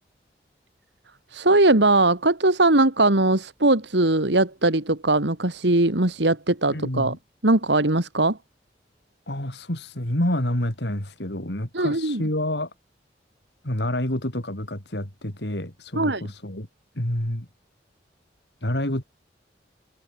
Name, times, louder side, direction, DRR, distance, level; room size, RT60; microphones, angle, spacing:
voice 1, 1.3-7.2 7.4-8.4 11.7-12.2 16.0-16.3, right 2 dB, 80° right, 2.5 m, -20 dB
voice 2, 6.7-7.2 9.3-12.7 13.6-16.7 17.0-17.5 18.6-19.0, left 1 dB, 75° left, 4.4 m, -28 dB
head